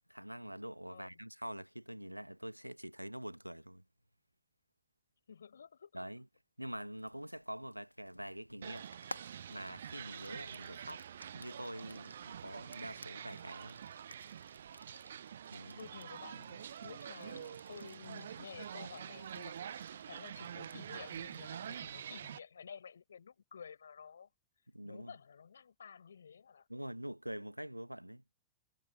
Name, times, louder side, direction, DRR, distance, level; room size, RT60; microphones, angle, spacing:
voice 1, 0.1-3.8 5.9-6.3 6.6-8.9 9.2-11.0 11.3-13.8 15.5-15.8 24.7-25.1 26.7-28.2, equal, 90° right, 1.3 m, -45 dB
voice 2, 0.9-1.2 5.3-5.9 15.7-24.3 24.8-26.7, left 6 dB, 70° left, 5.7 m, -52 dB
Frying (food), 7.0-21.8, left 1 dB, 90° left, 1.6 m, -57 dB
sound 1, 8.6-22.4, right 9 dB, 65° right, 0.3 m, -47 dB
figure-of-eight pair, 90°, 0 cm